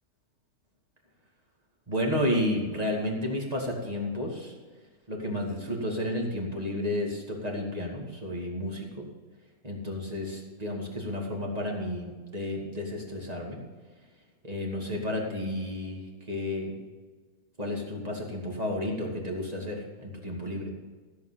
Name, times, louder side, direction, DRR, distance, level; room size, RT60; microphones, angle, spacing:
voice 1, 1.9-4.5 5.1-9.1 9.6-13.6 14.4-16.8 17.6-20.8, left 1 dB, 25° right, -1 dB, 2.4 m, -32 dB
15.0 x 7.8 x 5.8 m, 1.4 s
omnidirectional pair, 1.8 m